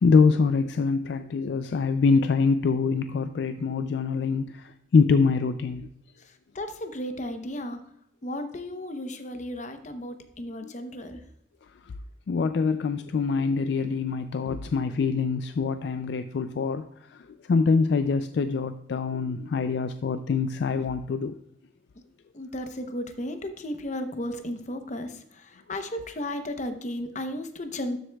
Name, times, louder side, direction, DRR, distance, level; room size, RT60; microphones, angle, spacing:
voice 1, 0.0-5.9 10.6-10.7 11.8-11.9 12.3-21.4, left 4 dB, 60° left, 0.3 m, -24 dB
voice 2, 6.5-7.8 8.2-11.2 22.3-28.0, left 1 dB, 40° left, 0.8 m, -34 dB
12.5 x 7.7 x 2.3 m
head